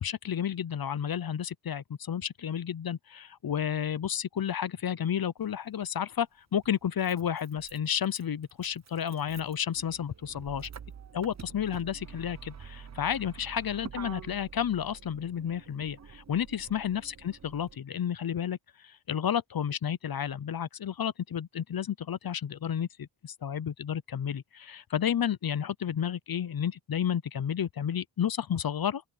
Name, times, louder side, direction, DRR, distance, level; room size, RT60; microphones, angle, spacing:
voice 1, 0.0-10.7 11.1-18.6 18.8-29.0, left 9 dB, 50° left, 0.6 m, -31 dB
Motor vehicle (road), 5.4-5.5 6.6-17.8, right 7 dB, 35° right, 0.6 m, -48 dB
open air
wide cardioid pair, 115°, 47 cm